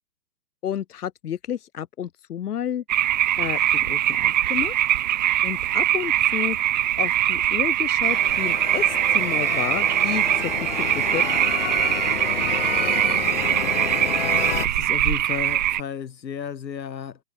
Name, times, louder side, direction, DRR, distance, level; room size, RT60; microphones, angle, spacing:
voice 1, 0.6-2.8 3.4-4.9 5.4-6.6 7.0-11.2, left 10 dB, 65° left, 4.0 m, -31 dB
sound 1, 2.9-15.8, right 12 dB, 25° right, 0.7 m, -22 dB
sound 2, 8.0-14.7, left 9 dB, 40° left, 0.5 m, -30 dB
voice 2, 14.6-17.2, left 7 dB, 90° left, 3.9 m, -33 dB
hypercardioid pair, 160°, 50 cm